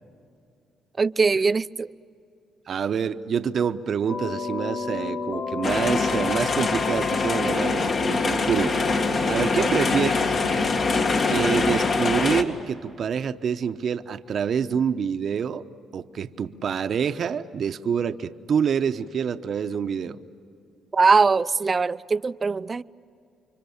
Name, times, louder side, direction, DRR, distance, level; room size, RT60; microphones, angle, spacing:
voice 1, 1.0-1.9 9.6-9.7 20.9-22.8, right 4 dB, 30° right, 0.5 m, -21 dB
voice 2, 2.7-10.2 11.3-15.6 15.9-20.2, right 7 dB, 55° right, 0.9 m, -27 dB
sound 1, 4.1-11.7, left 4 dB, 85° left, 3.5 m, -32 dB
sound 2, 5.6-12.4, left 3 dB, 55° left, 2.0 m, -24 dB
30.0 x 25.0 x 7.2 m
cardioid pair, 90°, 0 cm